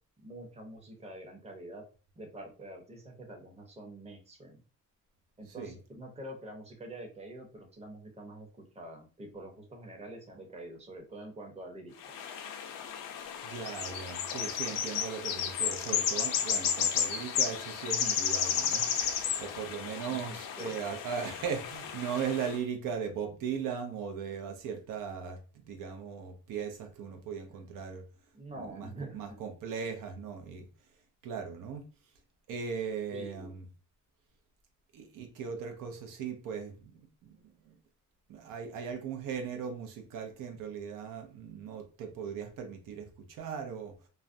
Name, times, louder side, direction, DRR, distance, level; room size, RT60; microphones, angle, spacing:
voice 1, 0.2-1.8 2.2-4.6 5.4-12.2 19.8-20.8 27.5-27.6 28.3-29.4 33.1-33.5, right 1 dB, 20° right, 0.7 m, -46 dB
sound 1, 12.0-22.6, left 8 dB, 85° left, 0.5 m, -33 dB
voice 2, 13.4-25.4 25.7-28.0 28.6-30.7 31.2-31.9 32.5-33.6 34.9-37.7 38.3-44.0, right 6 dB, 85° right, 0.6 m, -38 dB
2.3 x 2.1 x 2.5 m
cardioid pair, 115°, 32 cm